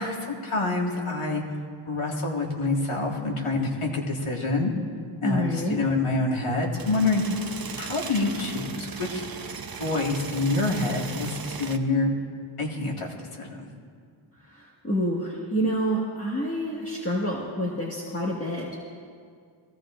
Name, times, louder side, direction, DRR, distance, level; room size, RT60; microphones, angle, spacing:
voice 1, 0.0-1.4 1.9-4.7 5.2-7.2 7.7-9.2 9.8-12.1 12.6-13.7, left 3 dB, 85° left, -1 dB, 2.0 m, -27 dB
voice 2, 5.2-5.8 14.5-18.7, equal, 30° left, -5 dB, 1.7 m, -28 dB
sound 1, 6.8-11.8, right 5 dB, 45° right, 0.8 m, -37 dB
21.0 x 16.5 x 2.5 m, 2.1 s
wide cardioid pair, 90°, 49 cm